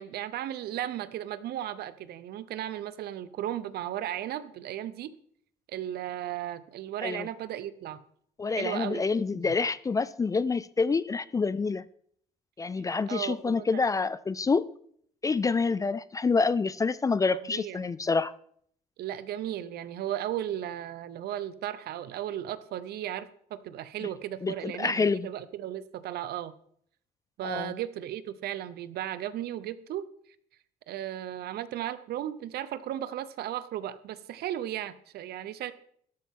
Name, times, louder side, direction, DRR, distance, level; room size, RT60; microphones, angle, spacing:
voice 1, 0.0-5.1 5.7-8.0 8.5-9.5 13.1-13.8 17.3-17.8 19.0-26.5 27.4-30.1 30.9-35.7, right 11 dB, 70° right, 0.8 m, -35 dB
voice 2, 8.4-11.8 12.6-14.7 15.2-18.3 24.0-24.1 24.4-25.3 27.4-27.7, left 4 dB, 20° left, 0.4 m, -27 dB
13.0 x 11.5 x 3.7 m
cardioid pair, 110°, 17 cm